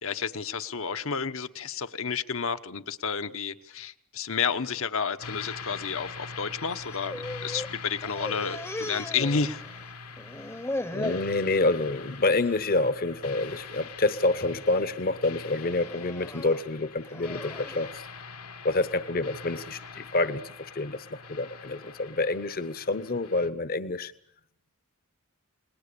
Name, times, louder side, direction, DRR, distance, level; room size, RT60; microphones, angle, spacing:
voice 1, 0.0-9.6, left 5 dB, 65° left, 9 dB, 1.1 m, -31 dB
sound 1, 5.2-23.5, left 5 dB, 80° left, 1.9 m, -43 dB
sound 2, 6.6-7.7 8.0-9.9 10.2-11.3 11.8-12.2 12.5-12.7 13.5-13.9 14.4-14.8 15.6-17.8, left 1 dB, 10° left, 0.8 m, -38 dB
voice 2, 10.9-18.0 18.6-24.1, left 2 dB, 45° left, 13 dB, 1.0 m, -28 dB
29.0 x 20.0 x 6.9 m, 0.74 s
head